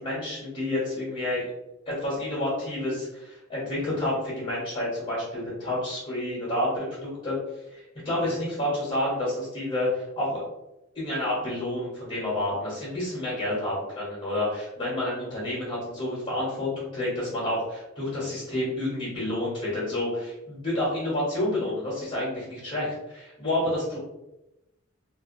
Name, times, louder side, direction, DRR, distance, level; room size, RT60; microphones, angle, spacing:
voice 1, 0.0-1.4 1.9-7.4 7.7-10.4 10.9-24.0, left 1 dB, 30° left, -9 dB, 1.0 m, -29 dB
2.5 x 2.3 x 2.5 m, 0.93 s
head